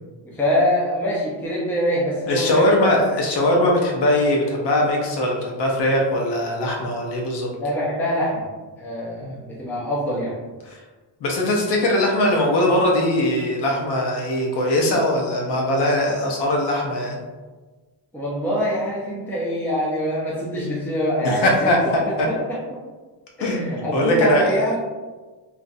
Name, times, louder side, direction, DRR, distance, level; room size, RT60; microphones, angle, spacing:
voice 1, 0.2-3.1 7.6-8.5 8.8-10.4 18.1-22.6 23.4-24.8, equal, 5° left, -5 dB, 0.5 m, -24 dB
voice 2, 2.3-7.5 9.2-9.3 10.7-10.8 11.2-17.2 20.5-20.8 21.2-22.3 23.4-24.5, left 1 dB, 65° left, -1 dB, 0.8 m, -21 dB
3.0 x 2.5 x 2.6 m, 1.3 s
cardioid pair, 160°, 44 cm